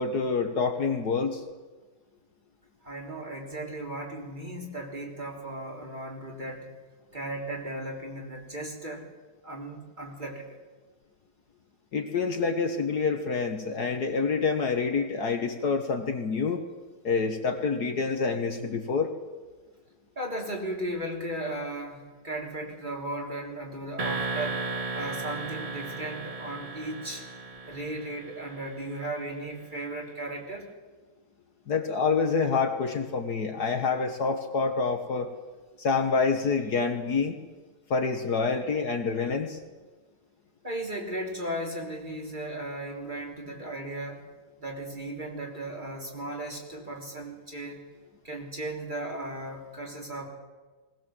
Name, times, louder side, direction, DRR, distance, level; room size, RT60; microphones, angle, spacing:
voice 1, 0.0-1.4 11.9-16.6 17.0-19.1 31.7-35.3 35.8-37.4 37.9-39.6, left 4 dB, 55° left, 6 dB, 1.8 m, -27 dB
voice 2, 2.8-6.7 7.1-9.1 9.4-10.6 20.2-24.6 24.9-27.2 27.7-30.7 40.6-44.2 44.6-47.9 48.2-50.3, right 1 dB, 25° right, 0 dB, 3.5 m, -36 dB
sound 1, 24.0-28.9, right 3 dB, 55° right, 0.4 m, -35 dB
20.0 x 19.0 x 7.7 m, 1.3 s
omnidirectional pair, 2.1 m